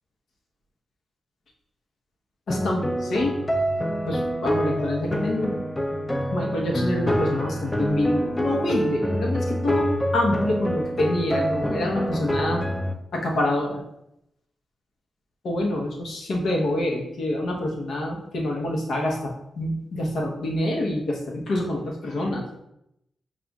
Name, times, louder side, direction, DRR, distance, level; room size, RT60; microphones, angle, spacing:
voice 1, 2.5-3.4 4.1-5.6 6.3-12.6 13.1-13.8 15.4-22.4, left 1 dB, 70° left, 0 dB, 0.9 m, -26 dB
sound 1, 2.5-12.9, equal, 15° left, 0.4 m, -26 dB
6.9 x 2.4 x 2.3 m, 0.81 s
cardioid pair, 65°, 0 cm